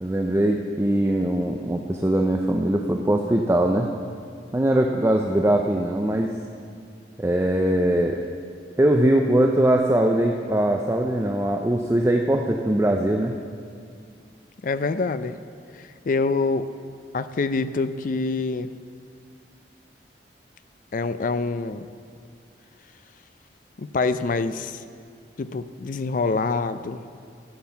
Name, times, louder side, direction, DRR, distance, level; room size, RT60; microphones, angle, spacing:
voice 1, 0.0-3.9 4.5-6.3 7.2-8.2 8.8-13.3, right 1 dB, 15° right, 2 dB, 0.4 m, -21 dB
voice 2, 14.6-15.4 15.7-16.7 17.1-18.7 20.9-21.9 23.8-24.8 25.4-27.1, left 3 dB, 50° left, 12 dB, 0.4 m, -26 dB
13.5 x 7.5 x 5.8 m, 2.2 s
head